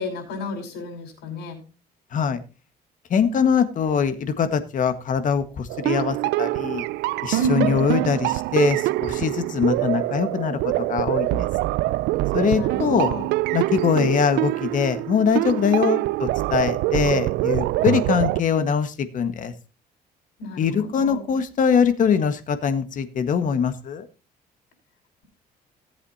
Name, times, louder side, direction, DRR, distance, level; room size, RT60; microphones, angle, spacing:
voice 1, 0.0-1.6 7.4-7.8 12.5-13.3 13.8-14.1 20.4-21.2, right 1 dB, 90° left, 2 dB, 5.7 m, -30 dB
voice 2, 3.1-6.8 7.2-10.6 10.9-11.5 12.3-13.1 13.5-19.5 20.6-24.0, left 7 dB, 50° left, 10 dB, 1.6 m, -22 dB
sound 1, 5.7-18.4, right 18 dB, 85° right, 0.4 m, -24 dB
17.5 x 8.1 x 2.8 m, 0.33 s
cardioid pair, 110°, 17 cm